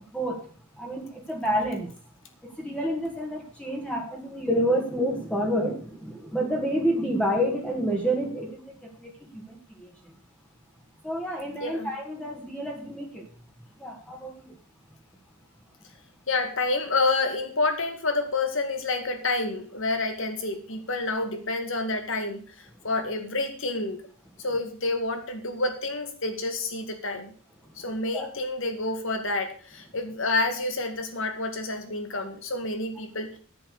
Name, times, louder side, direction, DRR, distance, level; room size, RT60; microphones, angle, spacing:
voice 1, 0.8-1.9 2.6-8.5 9.0-9.1 11.0-13.2 13.8-14.3 28.1-28.3, equal, 5° left, 0 dB, 1.8 m, -28 dB
voice 2, 16.3-24.0 24.4-27.3 27.8-33.4, left 3 dB, 65° left, 7 dB, 2.2 m, -28 dB
9.9 x 9.0 x 6.7 m, 0.44 s
head